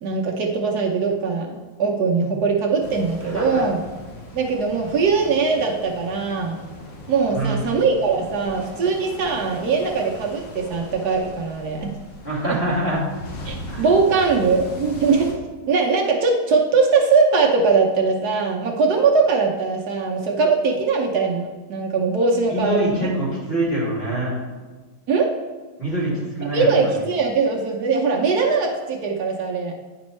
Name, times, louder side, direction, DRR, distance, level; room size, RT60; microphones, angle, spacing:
voice 1, 0.0-3.8 4.3-6.6 7.1-12.0 12.5-12.6 13.5-15.4 15.7-23.1 25.1-25.3 26.5-29.7, right 4 dB, 65° right, 0 dB, 1.2 m, -21 dB
sound 1, 2.8-15.3, left 1 dB, 70° left, 1.7 m, -39 dB
voice 2, 3.3-3.6 7.3-7.6 12.2-13.0 13.7-13.9 22.5-24.4 25.8-27.0, right 1 dB, 30° left, -7 dB, 2.6 m, -24 dB
9.6 x 5.3 x 3.1 m, 1.3 s
omnidirectional pair, 2.1 m